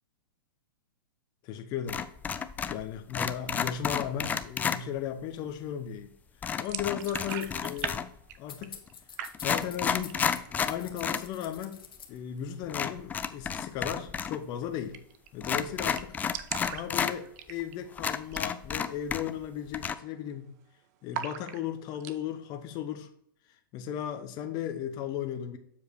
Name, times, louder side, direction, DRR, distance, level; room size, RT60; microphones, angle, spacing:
voice 1, 1.4-2.1 2.7-6.1 6.6-8.0 8.4-8.8 9.4-11.8 12.1-15.0 15.3-16.2 16.7-20.5 21.0-23.1 23.5-25.6, left 9 dB, 35° left, 7 dB, 0.8 m, -36 dB
sound 1, 1.9-2.8 3.1-4.8 6.4-8.2 8.9-9.0 9.3-11.3 11.6-11.7 12.7-14.4 14.6-14.7 15.4-17.1 17.6-17.7 18.0-19.5 19.7-19.9, left 7 dB, 15° left, 0.4 m, -31 dB
sound 2, 6.6-8.0 8.2-8.9 9.2-9.7 10.1-10.6 10.9-11.0 11.4-12.0 13.7-13.9 14.2-14.3 14.5-14.6 14.9-15.3 15.6-15.7 15.8-17.9 18.2-18.5 18.8-18.9 19.5-19.8 20.0-20.6 21.1-22.2, right 10 dB, 45° right, 0.7 m, -40 dB
sound 3, 7.0-8.0 8.5-10.4 10.7-12.2, left 7 dB, 80° left, 1.3 m, -46 dB
7.3 x 4.7 x 4.5 m, 0.71 s
hypercardioid pair, 120°, 12 cm